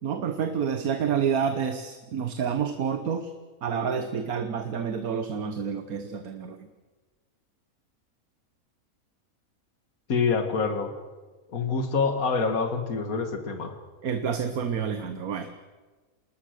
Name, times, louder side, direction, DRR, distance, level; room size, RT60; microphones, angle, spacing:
voice 1, 0.0-3.3 3.6-6.7 14.0-15.5, right 7 dB, 85° right, 9 dB, 1.6 m, -29 dB
voice 2, 10.1-10.9 11.5-13.8, left 5 dB, 75° left, 7 dB, 2.2 m, -26 dB
28.0 x 19.5 x 6.6 m, 1.3 s
omnidirectional pair, 1.5 m